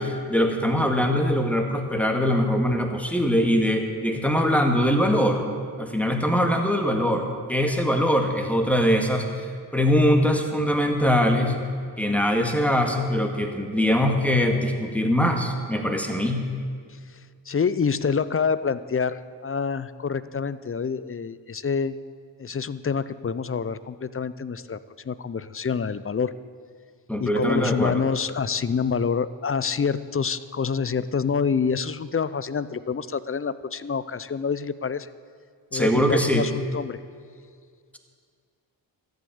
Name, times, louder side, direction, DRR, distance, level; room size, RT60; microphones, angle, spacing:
voice 1, 0.0-5.5 5.8-9.5 9.7-11.6 12.0-16.4 27.1-28.0 35.7-36.5, equal, 5° left, 3 dB, 2.0 m, -22 dB
voice 2, 17.5-22.0 22.4-24.8 25.1-26.3 27.2-35.1 35.7-37.0, left 6 dB, 30° left, 16 dB, 0.5 m, -27 dB
13.5 x 7.9 x 8.8 m, 2.1 s
cardioid pair, 55°, 47 cm